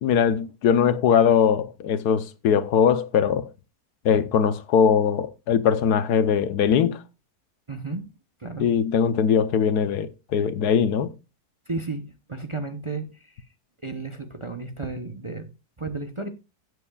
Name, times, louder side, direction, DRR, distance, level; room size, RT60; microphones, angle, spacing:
voice 1, 0.0-3.5 4.0-7.0 8.6-11.1, left 7 dB, 90° left, 1.4 m, -21 dB
voice 2, 7.7-8.1 8.4-8.7 11.7-13.5 13.8-15.5 15.8-16.3, right 3 dB, 25° right, 0.7 m, -33 dB
17.0 x 8.1 x 2.3 m
omnidirectional pair, 1.6 m